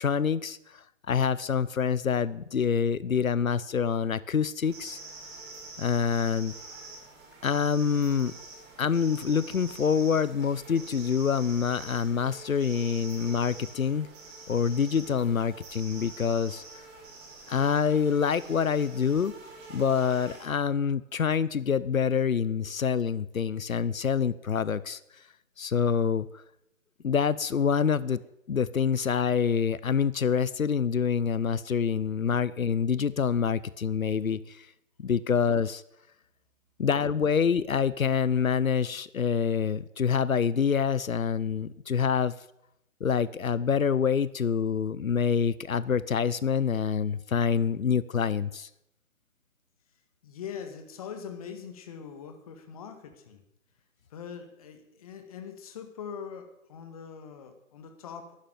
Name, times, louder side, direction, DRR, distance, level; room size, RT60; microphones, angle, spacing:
voice 1, 0.0-5.0 5.8-6.5 7.4-8.3 8.8-14.1 14.5-16.6 17.5-19.3 19.7-25.0 25.6-26.4 27.0-28.2 28.5-34.7 35.0-35.8 36.8-42.3 43.0-48.7, left 6 dB, 90° left, 17 dB, 0.8 m, -26 dB
sound 1, 4.6-20.5, right 3 dB, 15° right, 2.9 m, -46 dB
voice 2, 50.2-53.4 54.1-58.4, left 7 dB, 25° left, 6 dB, 2.0 m, -42 dB
11.5 x 11.5 x 9.3 m, 0.84 s
figure-of-eight pair, 155°, 40 cm